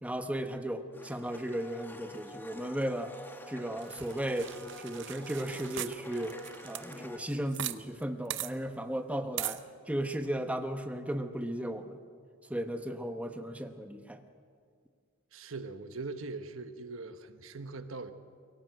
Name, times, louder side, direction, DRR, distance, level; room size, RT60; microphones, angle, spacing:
voice 1, 0.0-3.1 3.5-4.5 4.8-6.3 6.6-9.6 9.9-12.0 12.5-14.2, right 1 dB, 5° right, 7 dB, 0.9 m, -35 dB
Domestic sounds home sounds, 0.9-7.2, left 1 dB, 10° left, 1.3 m, -48 dB
sound 1, 3.8-7.8 8.0-8.1 8.3-8.5 9.4-9.6, right 13 dB, 60° right, 0.7 m, -39 dB
voice 2, 15.3-18.1, right 3 dB, 80° right, 10 dB, 1.1 m, -41 dB
23.0 x 17.5 x 7.9 m, 2.1 s
head